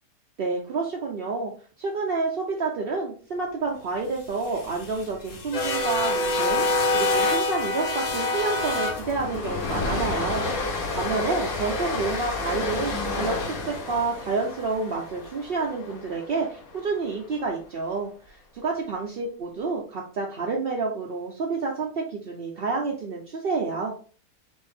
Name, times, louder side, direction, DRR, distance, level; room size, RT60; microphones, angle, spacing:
voice 1, 0.4-1.5 1.8-6.6 6.9-10.4 10.9-13.4 13.7-23.9, right 4 dB, 55° right, -1 dB, 0.6 m, -29 dB
sound 1, 4.3-16.5, left 2 dB, 60° left, 1.4 m, -28 dB
5.2 x 2.7 x 3.4 m, 0.40 s
omnidirectional pair, 1.8 m